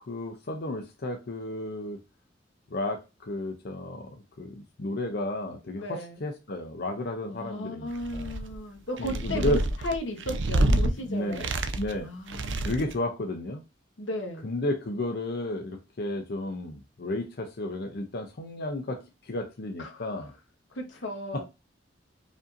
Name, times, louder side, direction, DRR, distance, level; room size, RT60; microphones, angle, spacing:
voice 1, 0.1-2.0 2.7-8.3 9.0-9.6 10.7-12.1 12.6-13.6 14.4-20.3 21.3-21.4, left 1 dB, 60° left, 0.6 m, -33 dB
voice 2, 5.7-6.2 7.3-9.6 9.8-11.5 12.0-12.7 14.0-14.4 19.8-20.1 20.7-21.4, left 1 dB, 90° left, 1.1 m, -35 dB
sound 1, 7.9-8.6 9.0-10.9 11.3-12.0 12.3-13.0, right 1 dB, 75° right, 0.5 m, -27 dB
5.0 x 2.7 x 2.5 m
head